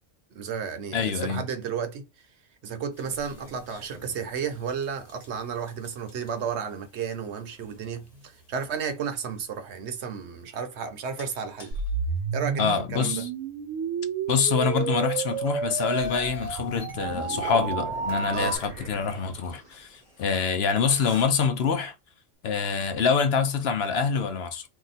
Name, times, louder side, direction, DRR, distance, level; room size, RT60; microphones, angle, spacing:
voice 1, 0.3-2.1 2.6-11.7 12.3-13.2 18.3-18.6, right 6 dB, 65° right, 0.9 m, -33 dB
voice 2, 0.9-1.4 12.6-13.3 14.3-21.9 22.4-24.7, left 6 dB, 60° left, 0.8 m, -25 dB
sound 1, 2.9-21.2, left 2 dB, 30° left, 1.1 m, -52 dB
sound 2, 11.7-18.6, right 6 dB, 85° right, 1.2 m, -31 dB
sound 3, 16.0-20.0, right 2 dB, 35° right, 0.7 m, -41 dB
2.8 x 2.2 x 4.0 m
omnidirectional pair, 1.3 m